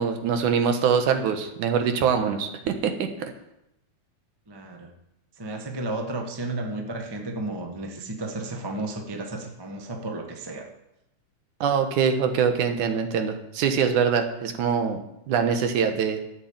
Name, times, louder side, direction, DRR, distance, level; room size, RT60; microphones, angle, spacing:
voice 1, 0.0-3.3 11.6-15.0 15.3-16.2, right 6 dB, 80° right, 6 dB, 2.7 m, -23 dB
voice 2, 4.5-4.9 5.4-10.7, right 2 dB, 35° right, 3 dB, 0.4 m, -33 dB
12.5 x 8.6 x 7.4 m, 0.89 s
omnidirectional pair, 3.5 m